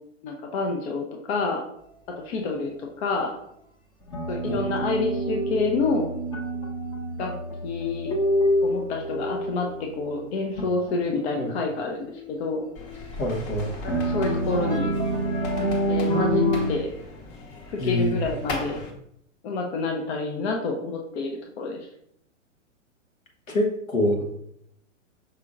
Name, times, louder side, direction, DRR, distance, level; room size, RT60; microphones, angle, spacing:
voice 1, 0.2-1.6 2.2-3.3 4.3-6.1 7.2-7.3 7.6-8.1 8.6-9.7 9.9-12.6 13.8-14.9 15.6-16.9 17.7-18.8 19.4-21.8, left 3 dB, 55° left, 1 dB, 0.7 m, -28 dB
sound 1, 4.1-10.1 10.6-11.2 12.2-12.3 13.9-16.7, equal, 10° left, 0.5 m, -26 dB
sound 2, 12.8-18.9, left 2 dB, 35° left, 1.0 m, -38 dB
voice 2, 13.2-13.7 17.8-18.2 23.5-24.2, left 1 dB, 85° left, 0 dB, 1.3 m, -25 dB
5.7 x 3.7 x 2.5 m, 0.74 s
hypercardioid pair, 115°, 39 cm